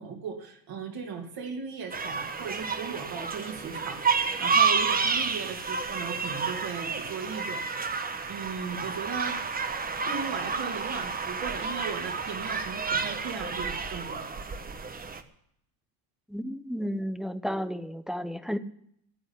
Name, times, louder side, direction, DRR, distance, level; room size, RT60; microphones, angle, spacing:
voice 1, 0.0-7.6 8.0-9.6 10.0-14.2, right 5 dB, 50° right, 1 dB, 2.8 m, -37 dB
sound 1, 1.9-15.2, right 5 dB, 20° right, 1.1 m, -30 dB
voice 2, 16.3-18.6, equal, ahead, 12 dB, 0.7 m, -32 dB
13.0 x 8.1 x 9.9 m, 0.70 s
cardioid pair, 120°, 46 cm